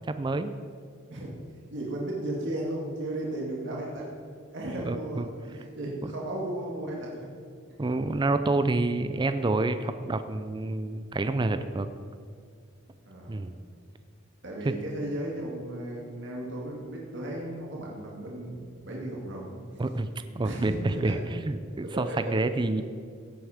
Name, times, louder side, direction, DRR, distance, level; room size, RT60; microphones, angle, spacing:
voice 1, 0.2-0.5 4.9-5.3 6.0-6.1 7.8-11.9 13.3-13.5 14.7-14.8 19.8-20.1 20.3-22.8, right 2 dB, 25° right, 10 dB, 0.4 m, -28 dB
voice 2, 1.7-4.1 4.5-7.3 13.0-13.5 14.4-19.8 20.4-21.2 21.8-22.2 22.8-22.9, right 1 dB, 65° right, -3 dB, 2.1 m, -35 dB
16.5 x 8.1 x 5.0 m, 2.1 s
head